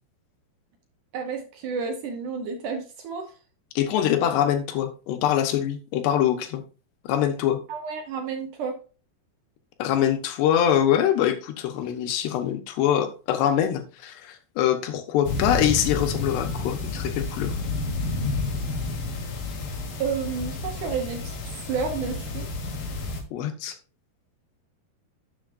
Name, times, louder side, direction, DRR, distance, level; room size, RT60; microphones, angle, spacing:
voice 1, 1.1-3.3 7.7-8.8 20.0-22.5, right 5 dB, 65° right, 2.1 m, -31 dB
voice 2, 3.8-6.6 7.1-7.6 9.8-17.6 23.3-23.8, left 10 dB, 85° left, 3.3 m, -24 dB
sound 1, 15.2-23.2, left 3 dB, 60° left, 3.4 m, -30 dB
12.0 x 7.1 x 2.6 m
omnidirectional pair, 4.7 m